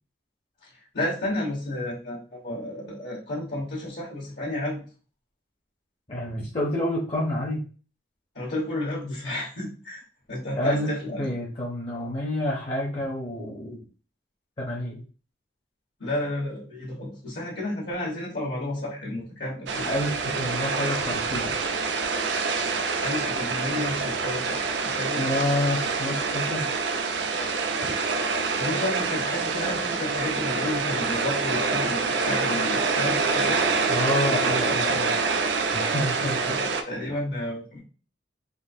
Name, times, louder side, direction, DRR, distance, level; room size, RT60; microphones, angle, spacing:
voice 1, 0.9-4.8 8.3-10.0 10.3-11.3 16.0-19.9 23.0-25.3 28.6-33.6 36.2-37.8, left 1 dB, 70° left, -5 dB, 1.2 m, -31 dB
voice 2, 6.1-7.7 10.6-10.9 11.2-13.8 14.6-15.0 19.8-21.5 25.2-26.7 27.8-27.9 33.9-35.1 35.7-36.6, left 1 dB, 35° left, -4 dB, 0.6 m, -28 dB
sound 1, 19.7-36.8, right 4 dB, 75° right, 0.4 m, -26 dB
3.7 x 2.4 x 2.6 m, 0.37 s
head